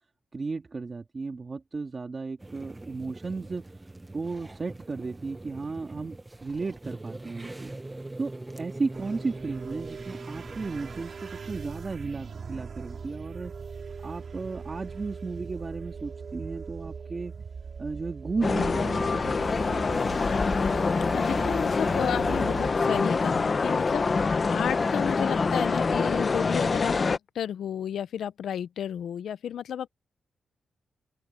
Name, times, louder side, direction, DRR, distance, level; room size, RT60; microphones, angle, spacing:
voice 1, 0.3-3.6 4.1-7.7 8.2-13.5 14.0-17.3 17.8-19.3, right 4 dB, 35° right, 2.1 m, -34 dB
sound 1, 2.4-11.0, right 2 dB, 15° right, 1.1 m, -42 dB
sound 2, 8.9-22.7, right 5 dB, 50° right, 2.6 m, -40 dB
sound 3, 18.4-27.2, left 4 dB, 35° left, 0.9 m, -25 dB
voice 2, 21.1-29.9, left 9 dB, 85° left, 0.6 m, -32 dB
open air
wide cardioid pair, 115°, 0 cm